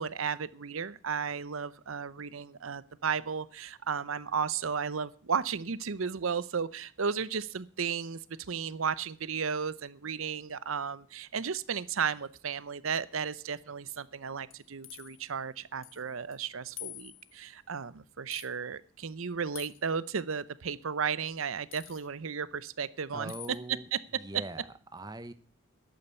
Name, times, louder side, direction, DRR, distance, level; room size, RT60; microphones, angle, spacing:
voice 1, 0.0-8.2 8.5-23.3, right 6 dB, 75° right, 17 dB, 0.7 m, -34 dB
sound 1, 14.5-15.2 15.8-16.0 16.3-16.4 16.8-17.4 18.3-18.5 19.5-19.9 21.7-22.1 23.3-23.6, left 15 dB, 65° left, 1.4 m, -46 dB
voice 2, 23.1-23.9 24.1-25.3, right 2 dB, 20° right, 12 dB, 0.7 m, -42 dB
11.5 x 8.9 x 9.3 m, 0.43 s
head